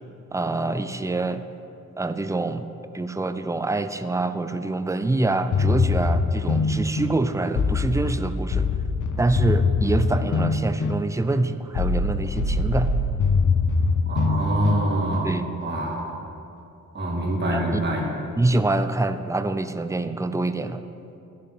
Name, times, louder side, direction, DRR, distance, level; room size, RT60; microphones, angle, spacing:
voice 1, 0.3-1.4 2.0-2.7 2.9-8.7 9.2-12.9 15.2-15.5 17.5-17.8 18.4-20.8, right 2 dB, 10° right, 10 dB, 0.5 m, -25 dB
sound 1, 5.5-15.3, left 3 dB, 60° left, 0.7 m, -23 dB
voice 2, 14.1-15.3 15.6-16.1 16.9-18.1, right 1 dB, 30° right, -4 dB, 2.3 m, -25 dB
11.5 x 3.8 x 7.2 m, 2.7 s
cardioid pair, 50°, 34 cm